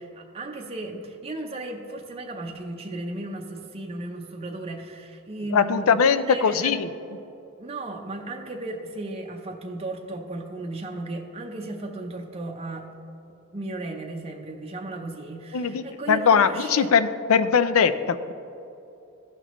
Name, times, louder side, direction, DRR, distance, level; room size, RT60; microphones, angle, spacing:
voice 1, 0.0-6.8 7.6-12.9 13.5-16.9, right 2 dB, 30° right, 1 dB, 0.6 m, -35 dB
voice 2, 5.5-6.9 15.5-18.3, left 6 dB, 70° left, 12 dB, 0.4 m, -21 dB
15.0 x 5.9 x 3.0 m, 2.8 s
head